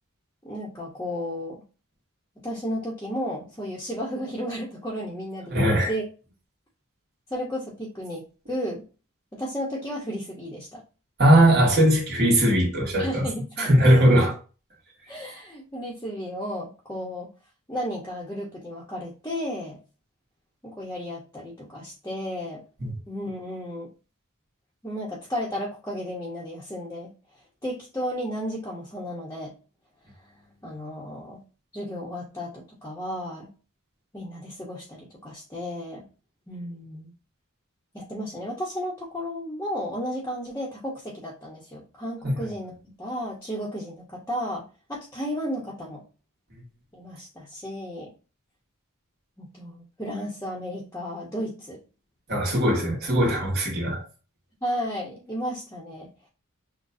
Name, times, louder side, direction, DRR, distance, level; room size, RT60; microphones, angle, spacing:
voice 1, 0.4-1.6 2.4-6.0 7.3-8.8 9.3-10.8 13.0-13.8 15.1-17.3 17.7-19.8 20.6-22.6 23.1-23.9 24.8-27.1 27.6-29.5 30.6-31.4 31.7-33.5 34.1-36.0 36.5-37.1 37.9-44.6 44.9-46.0 46.9-48.1 49.4-51.8 54.6-56.1, equal, 15° left, 0.9 m, -33 dB
voice 2, 5.5-5.9 11.2-13.3 13.6-14.4 22.8-22.9 42.2-42.5 52.3-54.0, right 1 dB, 50° right, 1.6 m, -20 dB
6.2 x 2.3 x 2.6 m
head